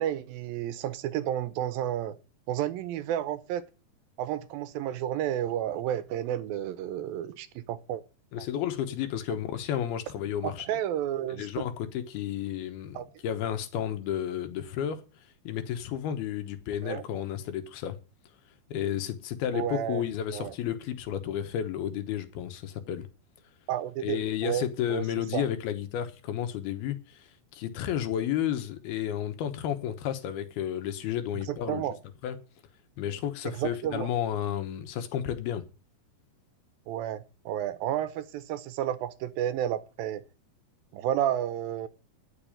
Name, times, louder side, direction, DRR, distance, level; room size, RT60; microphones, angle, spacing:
voice 1, 0.0-2.2 2.5-3.6 4.2-8.0 8.4-8.5 10.4-11.5 12.9-13.1 16.8-17.0 19.5-20.0 20.3-20.5 23.7-25.0 25.3-25.5 31.5-32.0 33.6-34.1 36.9-40.2 40.9-41.9, right 11 dB, 75° right, 2.5 m, -31 dB
voice 2, 8.3-10.7 11.3-15.0 15.4-18.0 18.7-23.1 24.0-31.9 32.2-32.4 33.0-35.6, left 10 dB, 85° left, 3.2 m, -32 dB
10.0 x 6.9 x 8.8 m
omnidirectional pair, 4.3 m